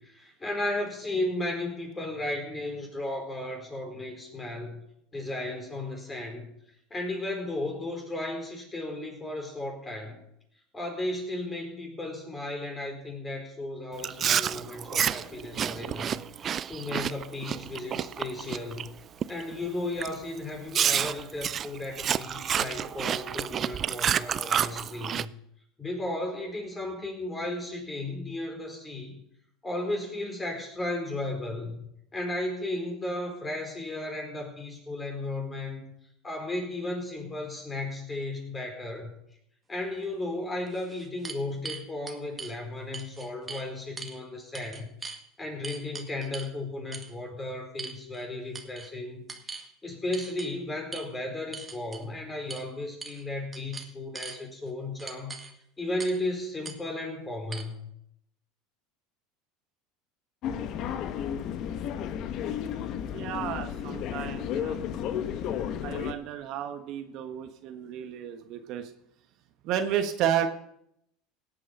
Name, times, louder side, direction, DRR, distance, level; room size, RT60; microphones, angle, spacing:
voice 1, 0.0-4.8 5.1-6.5 6.9-10.2 10.7-18.9 19.3-25.3 25.8-29.2 29.6-31.8 32.1-35.8 36.2-39.1 39.7-44.9 45.4-55.3 55.8-57.9, left 2 dB, 20° left, 2 dB, 4.5 m, -35 dB
Chewing mastication, 14.0-18.9 19.2-19.5 20.0-20.1 20.7-25.2, right 9 dB, 35° right, 0.4 m, -29 dB
sound 1, 40.0-40.1 40.7-42.5 42.9-43.7 44.0-44.2 44.5-45.2 45.6-46.5 46.9-47.1 47.8-48.3 48.5-48.9 49.3-49.7 50.1-50.5 50.9-51.1 51.5-52.0 52.5-52.7 53.0-53.2 53.5-54.4 55.0-55.5 56.0-56.2 56.6-56.8 57.5-57.6, right 4 dB, 20° right, 1.7 m, -40 dB
sound 2, 60.4-66.1, left 9 dB, 55° left, 1.0 m, -33 dB
voice 2, 63.1-64.8 65.8-68.9 69.6-70.5, right 10 dB, 55° right, 7 dB, 1.2 m, -32 dB
17.0 x 8.5 x 5.4 m, 0.76 s
supercardioid pair, 110°, 0 cm